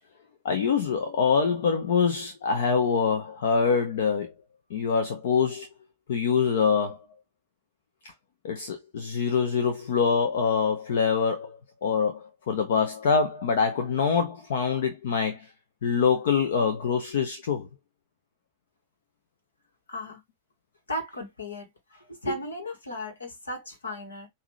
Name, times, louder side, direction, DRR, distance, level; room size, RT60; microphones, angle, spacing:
voice 1, 0.4-4.3 4.7-5.7 6.1-7.0 8.4-15.5 15.8-17.7, left 6 dB, 60° left, 0.8 m, -25 dB
voice 2, 19.9-20.2 20.9-24.3, left 1 dB, 75° left, 1.9 m, -35 dB
5.9 x 2.8 x 3.1 m
figure-of-eight pair, 90°, 0 cm